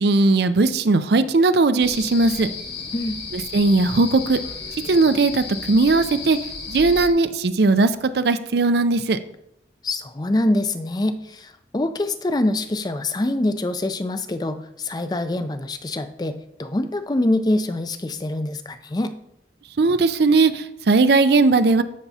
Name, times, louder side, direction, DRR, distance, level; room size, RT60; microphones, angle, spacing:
voice 1, 0.0-2.5 3.3-4.4 4.9-6.4 6.7-9.2 19.8-21.8, right 3 dB, 70° right, 11 dB, 0.5 m, -18 dB
sound 1, 1.8-7.1, left 4 dB, 70° left, 1.9 m, -34 dB
voice 2, 9.8-19.1, left 1 dB, 25° left, 10 dB, 0.4 m, -25 dB
14.5 x 5.9 x 2.8 m, 0.80 s
head